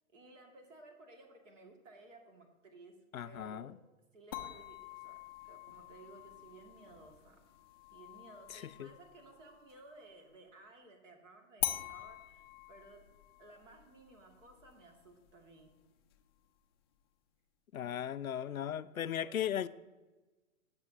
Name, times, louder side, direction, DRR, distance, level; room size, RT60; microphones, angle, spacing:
voice 1, 0.1-3.0 3.2-3.8 4.1-7.4 7.9-15.7 17.8-18.0 18.4-19.5, right 2 dB, 65° right, 3 dB, 2.3 m, -57 dB
voice 2, 3.1-3.7 8.5-8.9 17.7-19.7, left 10 dB, 85° left, 15 dB, 0.5 m, -37 dB
sound 1, 4.3-9.9 11.6-16.6, left 12 dB, 20° left, 0.4 m, -45 dB
18.0 x 6.8 x 2.8 m, 1.2 s
figure-of-eight pair, 115°, 41 cm